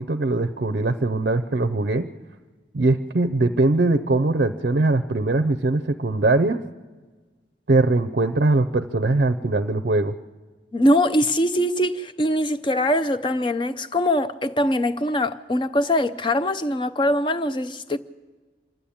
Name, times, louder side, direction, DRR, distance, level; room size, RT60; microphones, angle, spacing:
voice 1, 0.0-2.1 2.7-6.6 7.7-10.2, right 2 dB, 55° right, 0.5 m, -21 dB
voice 2, 10.7-18.0, left 1 dB, 25° left, 0.6 m, -22 dB
25.5 x 12.0 x 8.6 m
head